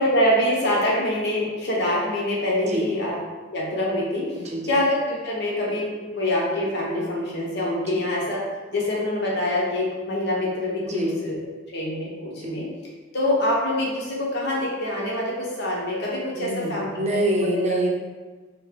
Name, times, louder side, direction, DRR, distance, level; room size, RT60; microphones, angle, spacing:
voice 1, 0.0-3.1 3.5-4.3 4.7-8.4 8.7-11.4 11.7-12.7 13.1-17.8, left 1 dB, 60° left, -4 dB, 1.1 m, -25 dB
voice 2, 4.3-4.7 7.8-7.9 10.8-11.2 12.4-12.6 16.4-17.9, right 1 dB, 35° right, -1 dB, 0.7 m, -26 dB
4.5 x 2.2 x 4.7 m, 1.4 s
head